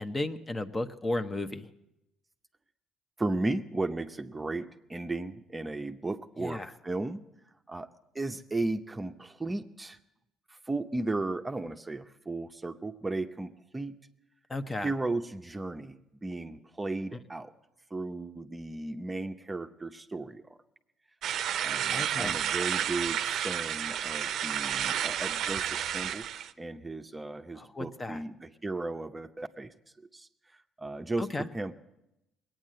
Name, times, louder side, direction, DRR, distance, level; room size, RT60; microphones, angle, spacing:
voice 1, 0.0-1.7 6.4-6.7 14.5-14.9 21.9-22.4 27.5-28.2 31.2-31.5, left 2 dB, 25° left, 9 dB, 0.9 m, -34 dB
voice 2, 3.2-7.2 7.7-7.9 8.1-10.0 10.7-14.0 14.8-17.5 17.9-20.6 21.6-26.3 26.6-29.7 30.1-30.3 30.8-31.3 31.5-31.7, right 2 dB, 20° right, 6 dB, 0.7 m, -35 dB
sound 1, 21.2-26.5, right 10 dB, 65° right, 0.6 m, -31 dB
20.0 x 9.2 x 7.6 m, 0.88 s
supercardioid pair, 75°, 0 cm